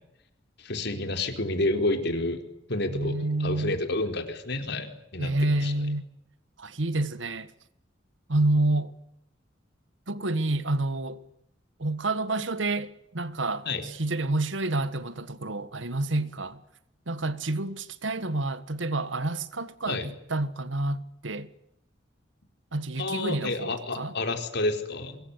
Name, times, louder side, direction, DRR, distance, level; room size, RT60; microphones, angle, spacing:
voice 1, 0.6-2.4 2.7-5.3 5.6-5.7 13.7-13.8 19.9-20.1 23.0-25.2, left 2 dB, 65° left, 4.4 m, -29 dB
voice 2, 2.9-3.8 5.2-6.0 6.6-7.5 8.3-8.9 10.1-11.2 11.8-16.6 17.1-21.5 22.7-24.2, right 2 dB, 85° right, 1.7 m, -29 dB
25.0 x 22.0 x 9.9 m
head